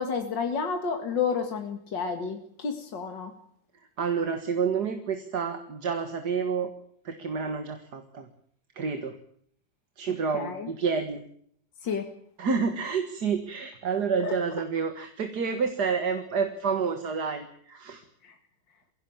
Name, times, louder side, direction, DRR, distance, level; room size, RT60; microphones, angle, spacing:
voice 1, 0.0-3.3 10.3-10.7 11.8-12.1 14.2-14.3 18.2-18.3, left 5 dB, 75° left, 5 dB, 2.7 m, -30 dB
voice 2, 4.0-6.7 7.0-8.3 8.8-9.2 10.0-11.2 12.4-18.0, right 5 dB, 60° right, 7 dB, 2.2 m, -29 dB
23.0 x 17.0 x 8.7 m, 0.66 s
omnidirectional pair, 2.0 m